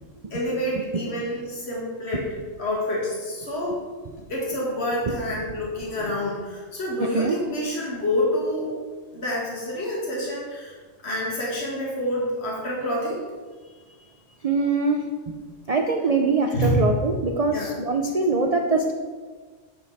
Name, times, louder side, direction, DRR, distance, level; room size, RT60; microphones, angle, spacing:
voice 1, 0.3-2.3 2.6-3.8 4.3-8.7 9.1-10.8 11.0-13.2 16.5-16.7 17.5-17.7, left 1 dB, 55° left, -4 dB, 2.3 m, -28 dB
voice 2, 14.4-15.0 15.7-18.9, right 3 dB, 45° right, 3 dB, 0.5 m, -23 dB
12.5 x 5.3 x 4.2 m, 1.5 s
omnidirectional pair, 1.4 m